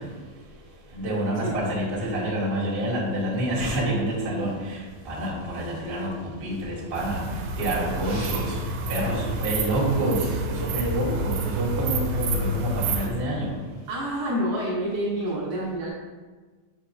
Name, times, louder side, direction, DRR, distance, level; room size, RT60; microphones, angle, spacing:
voice 1, 0.9-4.8 5.0-6.1 6.4-7.2 7.6-8.6 8.9-13.5, right 1 dB, 50° right, -9 dB, 0.6 m, -27 dB
sound 1, 7.0-13.1, right 2 dB, 85° right, 2.6 m, -29 dB
voice 2, 8.0-8.5 13.9-15.9, right 1 dB, 65° right, -6 dB, 2.2 m, -28 dB
7.0 x 5.5 x 2.6 m, 1.4 s
omnidirectional pair, 4.6 m